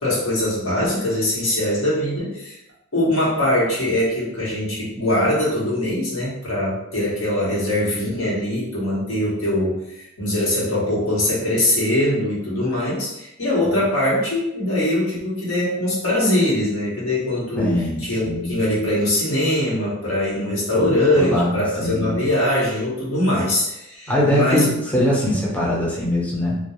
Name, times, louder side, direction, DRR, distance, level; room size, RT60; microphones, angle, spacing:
voice 1, 0.0-2.6 2.9-24.7, left 1 dB, 90° left, -6 dB, 1.0 m, -22 dB
voice 2, 17.6-18.5 20.7-22.2 24.1-26.6, left 1 dB, 5° left, -5 dB, 0.5 m, -22 dB
2.3 x 2.2 x 2.9 m, 0.85 s
head